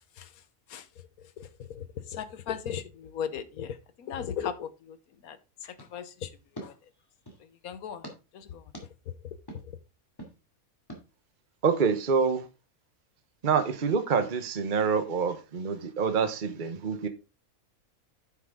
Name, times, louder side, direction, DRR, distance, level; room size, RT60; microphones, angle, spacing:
voice 1, 1.7-5.0 5.2-5.4 5.6-6.3 6.6-6.7 7.6-8.0 8.3-8.6, left 8 dB, 80° left, 1.4 m, -36 dB
sound 1, 5.8-7.5 8.0-8.2 8.7-8.9 9.5-9.6 10.2-10.3 10.9-11.0, equal, 15° left, 2.4 m, -45 dB
voice 2, 11.6-12.5 13.4-17.1, right 5 dB, 40° right, 1.1 m, -26 dB
9.7 x 6.2 x 3.6 m
omnidirectional pair, 1.5 m